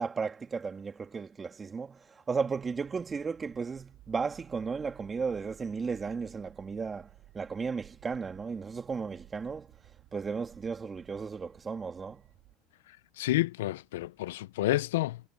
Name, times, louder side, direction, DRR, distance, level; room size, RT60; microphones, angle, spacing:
voice 1, 0.0-7.1 7.3-9.7 10.1-12.2, right 5 dB, 20° right, 2.0 m, -34 dB
sound 1, 2.5-12.6, right 16 dB, 55° right, 6.6 m, -57 dB
voice 2, 13.2-15.2, left 16 dB, 90° left, 0.4 m, -29 dB
supercardioid pair, 120°, 0 cm